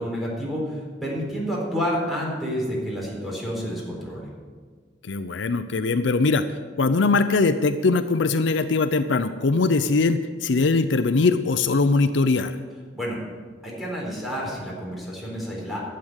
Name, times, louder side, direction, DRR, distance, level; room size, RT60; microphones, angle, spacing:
voice 1, 0.0-4.3 12.9-13.2 13.6-15.8, equal, ahead, -5 dB, 4.1 m, -29 dB
voice 2, 5.0-6.4 6.8-12.6, left 3 dB, 70° left, 11 dB, 0.6 m, -21 dB
12.0 x 7.8 x 8.1 m, 1.5 s
head